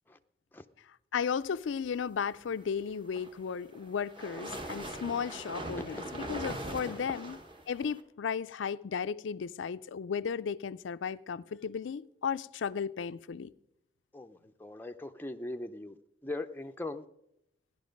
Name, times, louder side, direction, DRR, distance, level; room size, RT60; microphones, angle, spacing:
voice 1, 1.1-7.4 7.7-13.5, left 6 dB, 85° left, 0.4 m, -35 dB
sound 1, 2.9-8.0, right 1 dB, 25° right, 1.2 m, -41 dB
voice 2, 14.1-16.0 16.2-17.0, left 2 dB, 10° left, 0.5 m, -40 dB
16.0 x 11.0 x 5.2 m
head